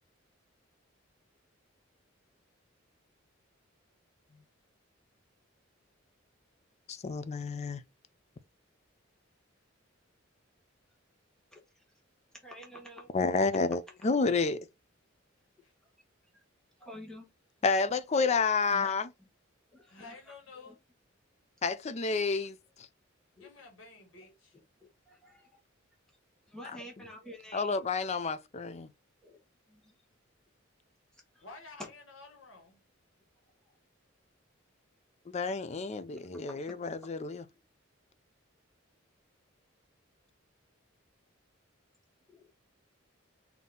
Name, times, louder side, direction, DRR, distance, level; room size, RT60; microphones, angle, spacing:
voice 1, 6.9-7.8 13.1-14.7 17.6-19.1 21.6-22.9 27.5-28.9 35.3-37.4, left 4 dB, 35° left, 0.4 m, -30 dB
voice 2, 11.5-11.8 12.4-13.1 13.9-14.0 16.3-16.4 16.8-17.3 19.7-20.7 23.4-23.5 24.2-24.3 25.1-25.5 26.5-27.8 29.2-29.4 29.7-29.9 31.1-31.5 33.6-33.7 36.1-36.8 42.3-42.5, equal, 5° left, 1.3 m, -50 dB
voice 3, 19.9-20.8 23.4-24.6 31.4-32.8, left 3 dB, 70° left, 1.7 m, -51 dB
4.0 x 2.8 x 3.7 m
head